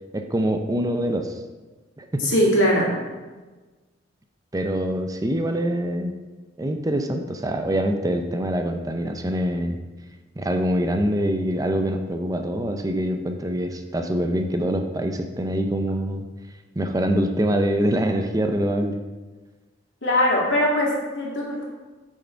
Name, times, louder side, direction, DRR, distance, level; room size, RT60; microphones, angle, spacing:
voice 1, 0.1-1.3 2.0-2.3 4.5-6.1 6.6-9.8 10.4-16.3 16.8-19.0, equal, 20° right, 5 dB, 0.5 m, -24 dB
voice 2, 2.2-2.9 20.0-21.6, equal, 85° left, -3 dB, 2.2 m, -21 dB
6.8 x 6.4 x 4.5 m, 1.3 s
head